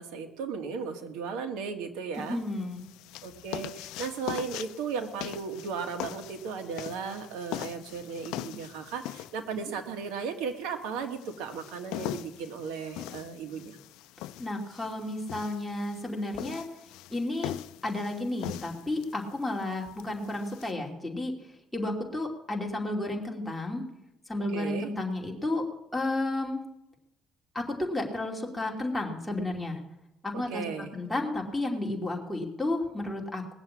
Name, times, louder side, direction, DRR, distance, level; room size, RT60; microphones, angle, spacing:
voice 1, 0.0-2.4 3.2-13.8 24.5-24.9 30.3-30.9, right 5 dB, 90° right, 6 dB, 1.8 m, -36 dB
sound 1, 2.1-20.7, left 14 dB, 85° left, 0.4 m, -41 dB
voice 2, 2.2-2.8 14.4-16.7 17.1-17.5 17.8-23.8 24.3-25.7 25.9-26.6 27.5-29.8 30.2-30.6 30.9-33.6, left 2 dB, 5° left, -1 dB, 2.6 m, -32 dB
19.5 x 7.3 x 8.5 m, 0.91 s
cardioid pair, 125°, 0 cm